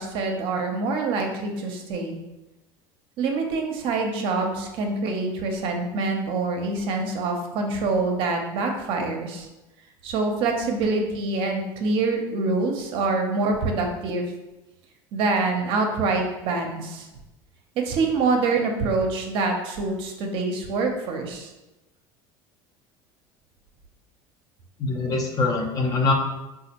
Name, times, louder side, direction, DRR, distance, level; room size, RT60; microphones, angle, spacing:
voice 1, 0.0-2.2 3.2-9.5 10.0-14.2 15.1-17.1 17.8-21.5, right 3 dB, 60° right, 3 dB, 0.6 m, -25 dB
voice 2, 24.8-26.1, left 3 dB, 35° left, 1 dB, 0.6 m, -23 dB
4.1 x 2.3 x 2.9 m, 1.0 s
supercardioid pair, 115°, 10 cm